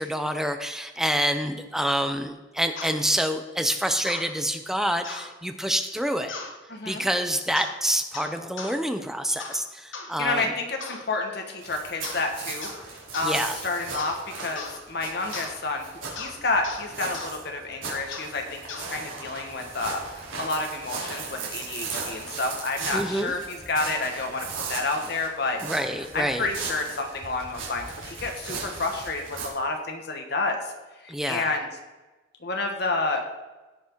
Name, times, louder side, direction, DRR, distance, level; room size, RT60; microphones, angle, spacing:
voice 1, 0.0-6.4 6.9-10.5 13.2-13.6 22.9-23.3 25.6-26.5 31.1-31.5, equal, ahead, 7 dB, 0.6 m, -27 dB
sound 1, 2.8-2.9 4.0-4.3 5.0-5.3 6.3-6.5 7.5-7.8 8.1-8.8 9.4-9.6 9.9-10.1 10.8-11.1 12.0-12.3 12.6-12.8 13.1-13.3 13.9-14.2 14.6-14.8 15.3-15.5 16.2-16.3 16.6-16.8 17.1-17.3 18.1-18.3 18.7-18.9, left 4 dB, 75° left, 1.5 m, -37 dB
voice 2, 6.7-7.0 10.2-25.6 26.1-30.7 31.0-31.8 32.4-33.2, left 3 dB, 55° left, 3 dB, 1.3 m, -30 dB
sound 2, 11.6-29.5, right 4 dB, 80° right, 3.7 m, -37 dB
17.0 x 6.0 x 4.6 m, 1.1 s
head